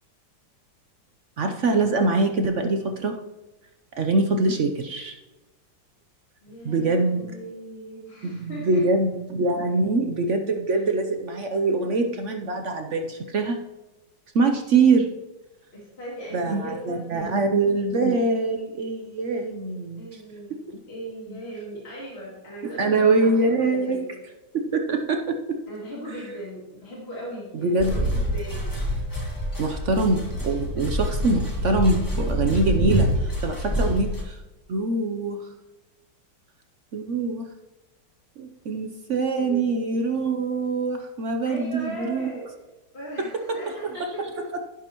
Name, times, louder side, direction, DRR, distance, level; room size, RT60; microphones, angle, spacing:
voice 1, 1.4-3.1 4.0-5.1 6.6-7.3 8.2-13.6 14.3-15.1 16.3-20.2 20.7-20.8 21.3-21.4 22.6-24.0 24.5-25.6 27.6-28.0 29.6-34.4 34.7-35.5 36.9-37.5 38.4-42.4 44.0-44.1, right 3 dB, 60° right, 5 dB, 0.7 m, -24 dB
voice 2, 6.4-8.8 10.7-10.9 15.7-17.4 20.0-20.6 20.9-23.3 23.7-24.0 25.7-28.7 39.3-40.0 41.4-42.4 42.9-44.5, right 1 dB, 30° left, -5 dB, 2.8 m, -38 dB
sound 1, 27.8-34.2, equal, 10° left, 1.8 m, -26 dB
11.0 x 11.0 x 3.0 m, 1.1 s
omnidirectional pair, 2.1 m